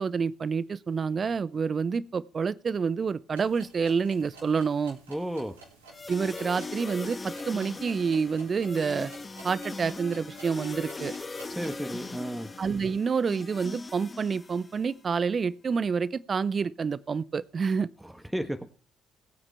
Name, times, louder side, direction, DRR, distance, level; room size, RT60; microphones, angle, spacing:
voice 1, 0.0-5.0 6.1-9.1 9.4-11.1 12.6-17.9, right 5 dB, 45° right, 0.7 m, -28 dB
sound 1, 3.3-11.7, right 3 dB, 90° right, 3.7 m, -52 dB
voice 2, 5.1-5.6 11.5-12.5 18.0-18.8, right 1 dB, 5° right, 1.5 m, -33 dB
sound 2, 5.9-15.0, left 3 dB, 30° left, 1.2 m, -40 dB
20.5 x 8.9 x 3.4 m
hypercardioid pair, 45°, 0 cm